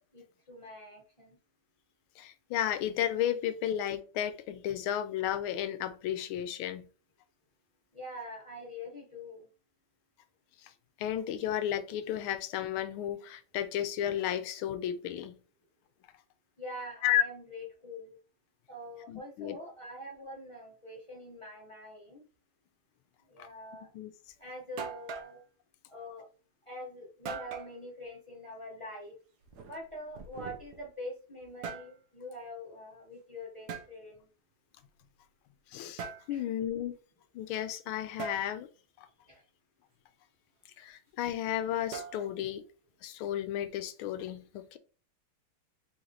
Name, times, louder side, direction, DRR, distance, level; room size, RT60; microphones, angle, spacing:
voice 1, 0.1-1.4 7.9-9.5 16.6-18.2 18.7-22.2 23.2-23.9 24.4-25.4 25.9-26.3 26.6-29.2 29.7-34.3 36.3-36.5 39.3-39.4, left 1 dB, 20° left, 0.8 m, -44 dB
voice 2, 2.2-6.9 10.6-10.7 11.0-15.4 17.0-17.2 19.1-19.6 23.9-24.1 35.7-37.0 37.3-38.7 39.0-39.1 40.8-42.6 43.0-44.8, left 11 dB, 80° left, 1.4 m, -33 dB
sound 1, 24.3-24.4 24.8-25.4 27.3-27.7 29.4-30.9 31.4-31.9 33.7-33.9 36.0-36.3 38.2-38.4 41.9-42.5, right 5 dB, 65° right, 1.1 m, -41 dB
4.3 x 3.1 x 3.9 m
omnidirectional pair, 2.3 m